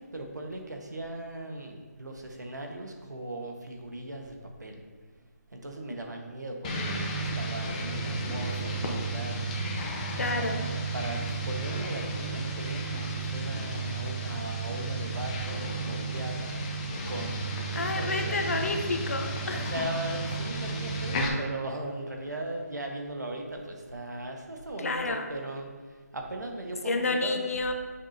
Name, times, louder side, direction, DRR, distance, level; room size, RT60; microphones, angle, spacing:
voice 1, 0.0-4.8 5.5-9.6 10.1-16.7 17.1-18.6 19.5-25.7 26.1-27.5, right 1 dB, 80° right, 2 dB, 1.3 m, -38 dB
sound 1, 6.6-21.3, right 2 dB, 25° left, 0.9 m, -33 dB
voice 2, 10.2-10.6 17.7-19.9 24.8-25.3 26.8-27.7, left 3 dB, 55° left, 5 dB, 0.9 m, -30 dB
7.1 x 6.3 x 2.7 m, 1.5 s
figure-of-eight pair, 155°, 9 cm